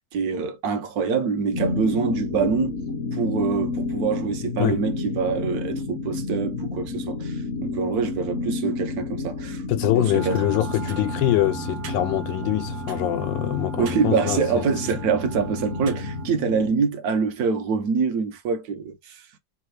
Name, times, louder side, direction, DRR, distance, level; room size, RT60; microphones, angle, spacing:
voice 1, 0.1-2.8 3.1-9.6 10.0-10.4 13.8-19.2, right 5 dB, 65° right, 1.1 m, -25 dB
sound 1, 1.5-16.8, left 3 dB, 60° left, 0.8 m, -30 dB
voice 2, 9.7-15.0, left 14 dB, 90° left, 1.3 m, -24 dB
sound 2, 10.1-16.3, right 8 dB, 80° right, 1.4 m, -37 dB
3.5 x 2.3 x 3.2 m
omnidirectional pair, 2.0 m